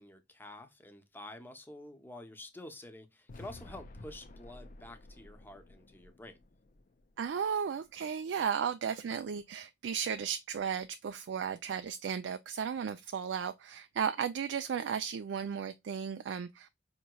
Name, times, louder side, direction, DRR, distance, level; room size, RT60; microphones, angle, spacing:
voice 1, 0.0-6.4, left 1 dB, 10° left, 0.7 m, -49 dB
sound 1, 3.3-7.4, left 2 dB, 50° left, 0.5 m, -53 dB
voice 2, 7.2-16.7, right 7 dB, 85° right, 0.4 m, -35 dB
5.2 x 2.9 x 2.2 m
head